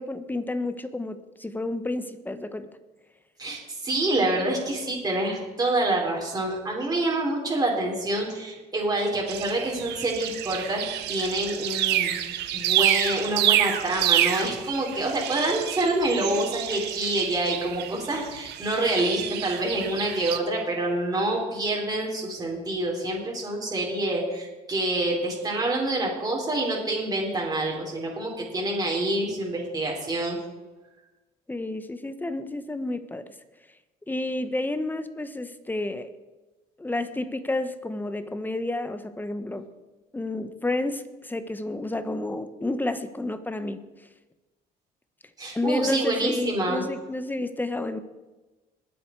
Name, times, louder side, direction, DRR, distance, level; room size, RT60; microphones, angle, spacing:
voice 1, 0.0-2.7 31.5-33.2 34.1-36.1 36.8-39.7 40.1-43.9 45.5-48.0, left 2 dB, 10° left, 11 dB, 1.0 m, -30 dB
voice 2, 3.4-10.8 11.1-12.1 12.5-30.4 45.4-46.8, right 2 dB, 20° right, -2 dB, 4.1 m, -27 dB
sound 1, 9.3-20.4, right 12 dB, 80° right, 1.0 m, -28 dB
21.0 x 7.9 x 4.7 m, 1.1 s
cardioid pair, 110°, 17 cm